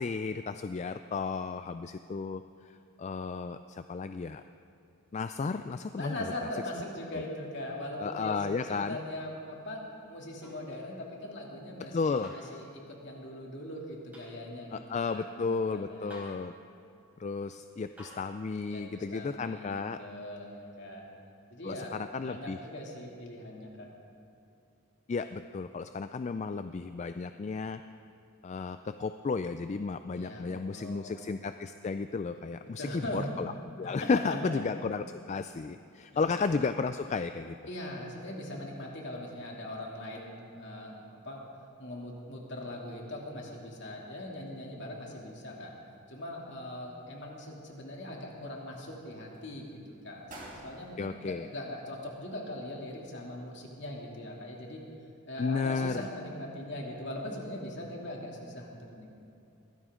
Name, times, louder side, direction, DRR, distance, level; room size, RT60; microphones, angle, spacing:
voice 1, 0.0-4.4 5.1-6.3 7.1-7.2 8.0-9.0 11.9-12.3 14.7-16.5 17.2-20.0 21.6-22.6 25.1-27.8 28.4-33.5 33.8-37.6 51.0-51.5 55.4-56.0, left 4 dB, 30° left, 9 dB, 0.3 m, -33 dB
voice 2, 6.0-9.8 10.1-14.8 15.1-16.2 18.7-21.0 21.5-22.0 22.2-23.9 30.1-31.2 32.8-33.3 33.8-34.1 36.1-36.3 37.7-41.4 41.8-45.7 46.1-50.3 50.6-54.8 55.3-59.2, left 1 dB, 55° left, -2 dB, 2.7 m, -41 dB
sound 1, 8.6-8.9 10.4-10.7 12.2-12.5 14.1-14.3 16.1-16.5 18.0-18.3 20.0-20.1, left 1 dB, 5° right, 4.6 m, -50 dB
sound 2, 46.5-47.3 47.7-48.6 49.1-49.5 50.0-50.1 50.3-52.2 52.5-52.6, right 1 dB, 35° right, 4.5 m, -51 dB
22.0 x 16.0 x 3.8 m, 2.6 s
head